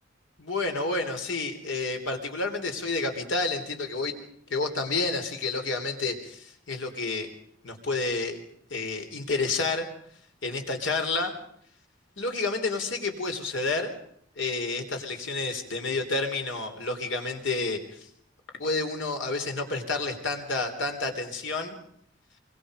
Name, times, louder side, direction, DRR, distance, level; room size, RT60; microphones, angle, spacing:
voice 1, 0.4-4.1 4.5-7.3 7.6-8.4 8.7-9.9 10.4-11.3 12.2-13.9 14.4-17.8 18.6-21.8, left 3 dB, 80° left, 5 dB, 3.8 m, -29 dB
25.0 x 25.0 x 5.2 m, 0.66 s
head